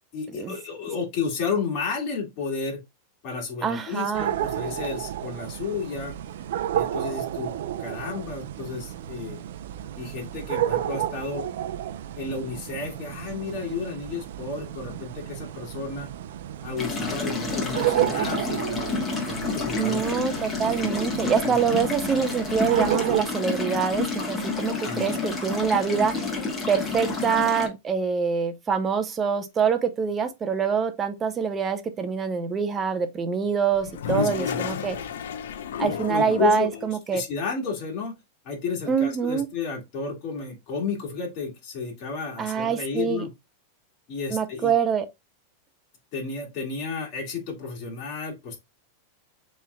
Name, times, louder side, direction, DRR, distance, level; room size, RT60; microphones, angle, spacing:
voice 1, 0.1-2.8 3.2-6.1 6.7-9.4 10.0-11.5 12.2-16.1 16.6-20.0 20.6-20.7 21.5-21.6 24.8-25.1 34.0-34.7 35.8-38.1 38.4-43.3 44.1-44.7 46.1-48.6, left 5 dB, 35° left, 2.0 m, -32 dB
voice 2, 3.6-4.3 19.8-26.4 26.7-35.0 35.8-37.2 38.9-39.5 42.4-43.3 44.3-45.1, right 6 dB, 15° right, 0.6 m, -25 dB
sound 1, 4.1-23.2, right 12 dB, 70° right, 0.4 m, -31 dB
sound 2, 16.8-27.7, left 3 dB, 15° left, 1.2 m, -30 dB
Toilet flush, 33.7-36.8, left 8 dB, 90° left, 0.5 m, -31 dB
7.3 x 3.2 x 2.2 m
supercardioid pair, 165°, 0 cm